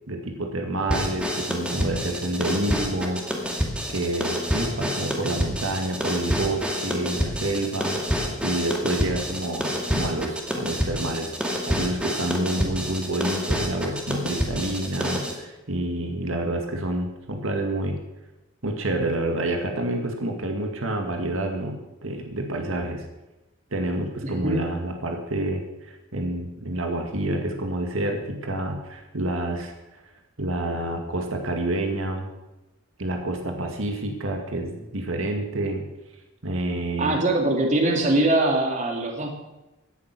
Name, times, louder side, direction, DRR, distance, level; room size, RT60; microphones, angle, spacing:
voice 1, 0.1-3.6 3.9-8.0 8.4-18.0 18.6-23.1 23.7-30.0 30.4-32.3 33.0-35.9 36.4-37.2, right 1 dB, 75° right, 3 dB, 2.1 m, -28 dB
sound 1, 0.9-15.4, equal, 5° right, 2.2 m, -28 dB
voice 2, 24.2-24.6 37.0-39.3, right 2 dB, 35° right, 2 dB, 2.6 m, -22 dB
16.5 x 11.0 x 6.1 m, 1.0 s
head